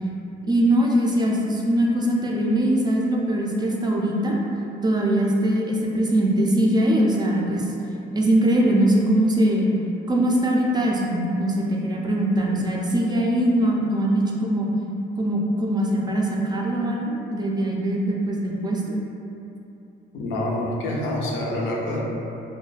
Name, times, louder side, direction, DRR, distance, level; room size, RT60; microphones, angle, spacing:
voice 1, 0.5-4.4 4.8-7.7 8.1-9.7 10.1-14.7 15.2-19.0, right 1 dB, 20° right, -2 dB, 0.4 m, -21 dB
voice 2, 20.1-22.0, left 1 dB, 85° left, -3 dB, 0.5 m, -26 dB
2.4 x 2.2 x 3.2 m, 2.8 s
cardioid pair, 90°, 20 cm